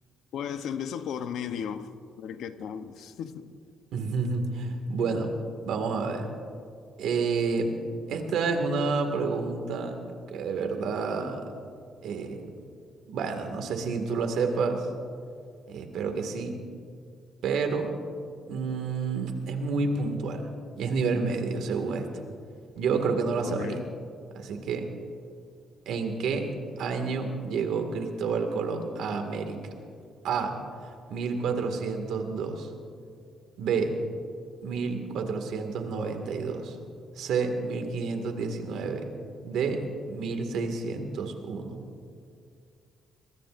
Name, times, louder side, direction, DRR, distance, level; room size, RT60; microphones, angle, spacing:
voice 1, 0.3-3.5 23.4-24.0, left 8 dB, 80° left, 0.8 m, -35 dB
voice 2, 3.9-5.3 5.6-6.3 7.0-7.7 8.1-10.0 10.3-11.5 12.0-12.5 13.1-14.9 15.7-16.5 17.4-17.9 18.5-20.5 20.8-22.1 22.8-23.8 24.3-24.9 25.9-26.5 26.8-29.6 30.2-30.6 31.1-32.7 33.6-34.0 34.6-36.8 37.2-39.1 39.4-41.8, right 4 dB, 80° right, 2.0 m, -29 dB
24.0 x 21.5 x 2.6 m
cardioid pair, 90°, 0 cm